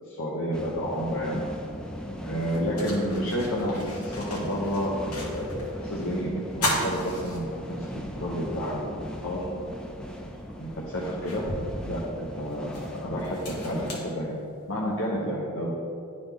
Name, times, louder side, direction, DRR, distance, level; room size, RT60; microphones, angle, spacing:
voice 1, 0.1-1.4 2.2-7.4 7.7-7.9 8.1-9.4 10.0-10.1 10.6-11.4 11.9-14.3 14.7-15.7, equal, 60° left, -5 dB, 0.9 m, -30 dB
sound 1, 0.5-13.9, equal, 5° left, 0.4 m, -38 dB
sound 2, 1.7-1.8 2.3-5.7 6.0-6.1 6.5-8.0 8.4-8.5 10.0-10.1 10.6-14.8, left 1 dB, 85° left, 1.7 m, -35 dB
11.0 x 4.0 x 3.5 m, 2.7 s
head